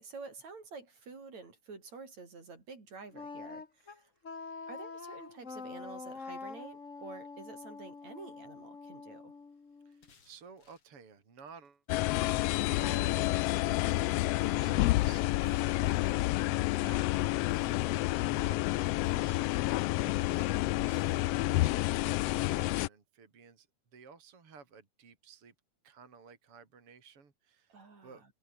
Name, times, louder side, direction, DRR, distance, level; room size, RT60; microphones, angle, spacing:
voice 1, 0.0-4.1 4.7-9.3 14.5-15.0 27.7-28.3, right 4 dB, 65° right, 6.5 m, -49 dB
Wind instrument woodwind instrument, 3.1-10.1, left 4 dB, 30° left, 2.2 m, -45 dB
sound 1, 9.9-10.9 11.5-12.5 13.6-14.3 15.3-16.3 17.3-18.1 18.8-19.6 20.4-21.4, left 5 dB, 50° left, 4.3 m, -64 dB
voice 2, 9.9-11.8 12.8-14.1 14.4-23.7 23.9-25.5 25.8-28.2, right 5 dB, 50° right, 4.4 m, -55 dB
sound 2, 11.9-22.9, left 18 dB, 85° left, 1.4 m, -29 dB
omnidirectional pair, 3.4 m